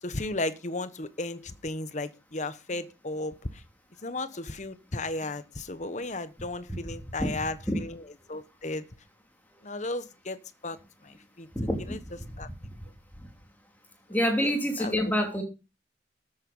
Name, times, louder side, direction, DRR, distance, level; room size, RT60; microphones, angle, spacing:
voice 1, 0.0-3.6 4.0-8.8 9.6-11.5 11.9-12.0 12.4-12.5 14.1-15.0, left 2 dB, 40° left, 13 dB, 1.1 m, -35 dB
voice 2, 11.5-12.0 14.1-15.4, equal, 10° left, 3 dB, 3.2 m, -26 dB
13.5 x 8.0 x 5.4 m, 0.30 s
head